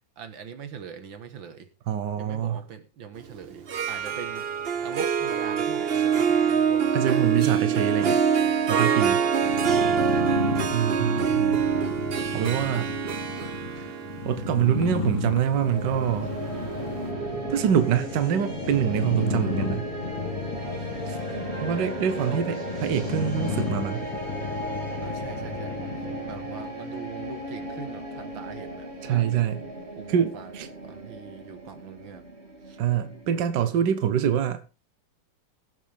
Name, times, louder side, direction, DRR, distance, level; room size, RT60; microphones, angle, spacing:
voice 1, 0.2-1.7 2.2-4.5 4.8-7.2 9.0-9.7 10.1-10.4 22.3-22.4 25.0-29.4 29.9-30.6 30.8-32.3 32.6-32.8, right 7 dB, 90° right, 2.2 m, -42 dB
voice 2, 1.9-2.6 6.9-8.2 8.7-9.2 10.7-11.7 12.3-13.0 13.8-13.9 14.2-16.3 17.5-19.9 21.1-21.2 21.6-24.1 29.0-29.6 30.1-30.7 32.8-34.6, right 9 dB, 70° right, 1.6 m, -25 dB
Harp, 3.6-16.5, right 7 dB, 50° right, 0.7 m, -25 dB
sound 1, 9.4-26.7, left 5 dB, 70° left, 1.8 m, -33 dB
sound 2, 15.5-33.7, right 1 dB, 35° right, 3.0 m, -35 dB
22.0 x 7.6 x 3.4 m
omnidirectional pair, 2.0 m